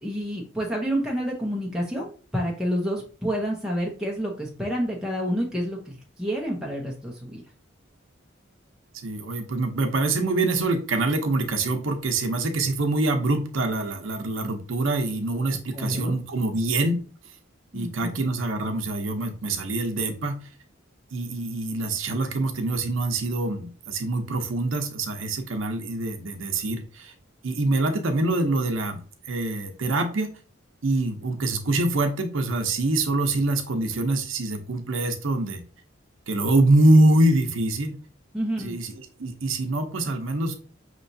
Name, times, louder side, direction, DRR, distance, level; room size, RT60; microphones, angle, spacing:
voice 1, 0.0-7.4 15.7-16.2 17.7-18.2 38.3-38.8, equal, 5° right, -3 dB, 0.6 m, -29 dB
voice 2, 9.0-17.0 17.7-20.5 21.1-27.1 27.4-30.3 30.8-35.6 36.3-38.0 38.6-38.9 39.2-40.6, right 2 dB, 75° right, 5 dB, 0.7 m, -24 dB
5.6 x 3.0 x 2.6 m, 0.40 s
head